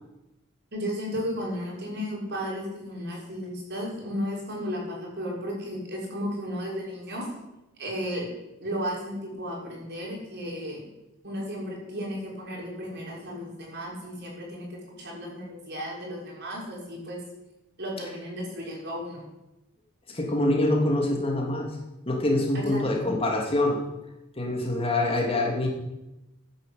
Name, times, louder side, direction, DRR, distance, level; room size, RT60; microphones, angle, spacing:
voice 1, 0.7-7.3 7.8-10.8 11.2-17.2 17.8-19.3 22.5-23.1, equal, 50° right, -2 dB, 6.3 m, -34 dB
voice 2, 20.1-21.7 22.1-23.8 24.4-25.7, left 1 dB, 25° left, 0 dB, 3.0 m, -25 dB
14.5 x 10.5 x 8.8 m, 0.96 s
head